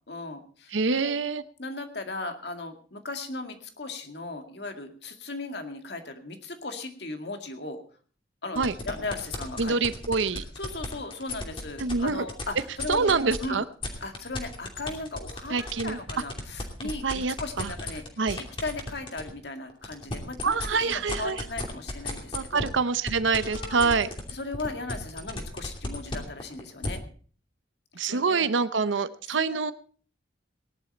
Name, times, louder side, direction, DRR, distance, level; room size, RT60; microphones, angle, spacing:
voice 1, 0.1-1.1 1.6-7.8 8.4-9.8 10.6-13.6 14.0-22.7 23.4-23.9 24.3-27.0 28.0-28.5 29.3-29.6, left 2 dB, 60° left, 6 dB, 2.2 m, -37 dB
voice 2, 0.7-1.4 8.6-8.7 9.6-10.4 11.8-12.3 12.9-13.6 15.5-16.0 17.0-17.7 18.2-18.4 20.4-21.4 22.3-24.1 28.0-29.7, right 4 dB, 85° right, 13 dB, 0.7 m, -26 dB
sound 1, 8.6-13.4 13.8-19.3 19.7-26.9, left 2 dB, 25° left, 2.8 m, -34 dB
19.0 x 11.0 x 4.3 m, 0.43 s
head